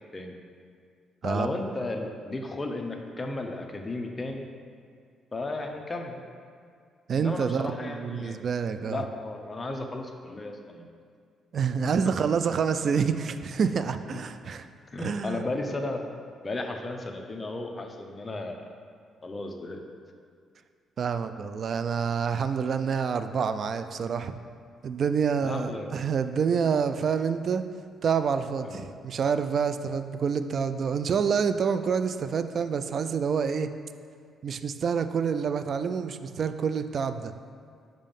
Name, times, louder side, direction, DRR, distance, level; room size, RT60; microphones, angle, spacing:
voice 1, 1.2-4.5 5.3-6.2 7.1-8.4 8.9-10.9 14.1-14.2 14.9-16.0 16.4-18.6 19.2-19.8 25.4-25.9 28.6-28.9, left 2 dB, 25° left, 3 dB, 0.7 m, -34 dB
voice 2, 7.1-9.0 11.5-14.7 15.0-15.4 21.0-24.3 24.8-27.6 28.0-33.7 34.4-37.3, right 6 dB, 55° right, 10 dB, 0.3 m, -27 dB
5.5 x 5.0 x 5.3 m, 2.1 s
cardioid pair, 90°, 0 cm